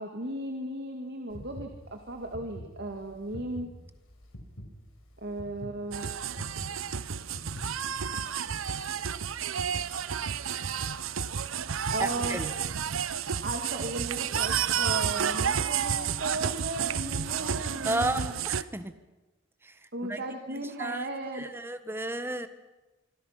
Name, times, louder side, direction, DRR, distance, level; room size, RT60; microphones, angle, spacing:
voice 1, 0.0-3.7 5.2-6.1 11.9-12.4 13.4-18.3 19.9-21.5, right 2 dB, 55° right, 4 dB, 2.1 m, -36 dB
sound 1, 1.3-8.0, equal, 85° left, 5.0 m, -45 dB
sound 2, 5.9-18.6, right 7 dB, 80° right, 0.8 m, -31 dB
voice 2, 12.0-12.5 17.8-18.9 19.6-19.7 20.1-20.2 20.5-21.1 21.3-22.5, right 1 dB, 10° right, 10 dB, 1.3 m, -33 dB
25.5 x 24.5 x 5.9 m, 1.1 s
head